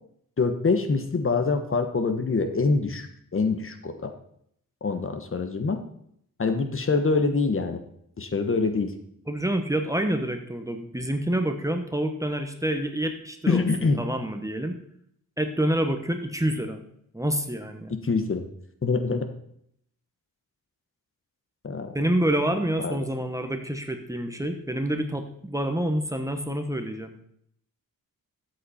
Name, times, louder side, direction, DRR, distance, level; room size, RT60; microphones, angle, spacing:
voice 1, 0.4-3.1 3.3-4.1 4.8-5.8 6.4-7.8 8.2-8.9 13.5-14.0 18.0-18.4 18.8-19.3 21.6-21.9 22.8-23.0, left 4 dB, 40° left, 7 dB, 1.2 m, -25 dB
voice 2, 9.3-14.8 15.4-16.8 17.1-18.0 21.9-27.1, right 1 dB, 10° right, 6 dB, 1.2 m, -27 dB
13.0 x 8.2 x 4.3 m, 0.69 s
wide cardioid pair, 105°, 34 cm